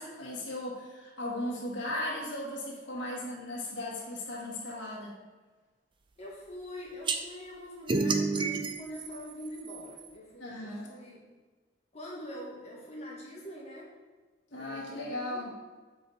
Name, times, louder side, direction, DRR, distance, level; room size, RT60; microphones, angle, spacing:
voice 1, 0.0-5.1 10.4-10.9 14.5-15.5, left 1 dB, 70° left, -5 dB, 1.8 m, -37 dB
voice 2, 6.2-11.2 11.9-13.9 14.5-15.4, left 1 dB, 35° left, -4 dB, 1.4 m, -44 dB
sound 1, 7.1-7.2 7.9-10.1, right 3 dB, 25° right, 0.4 m, -30 dB
7.6 x 4.3 x 4.2 m, 1.3 s
head